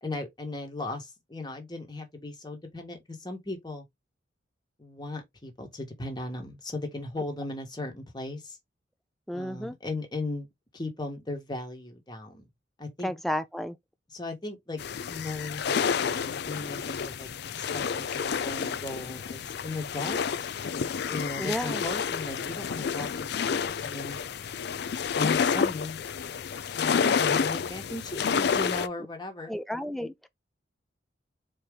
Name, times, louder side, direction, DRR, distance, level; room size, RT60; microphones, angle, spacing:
voice 1, 0.0-3.8 4.8-8.6 9.3-10.5 10.7-12.5 12.8-13.1 14.1-14.8 15.0-17.3 17.6-20.5 21.1-23.1 23.4-24.2 25.2-26.0 26.7-29.5, left 2 dB, 25° left, 1.4 m, -37 dB
voice 2, 9.3-9.8 13.0-13.8 21.4-21.8 29.5-30.3, equal, ahead, 0.5 m, -32 dB
sound 1, 14.8-28.9, left 6 dB, 60° left, 0.4 m, -29 dB
4.5 x 3.2 x 3.6 m
head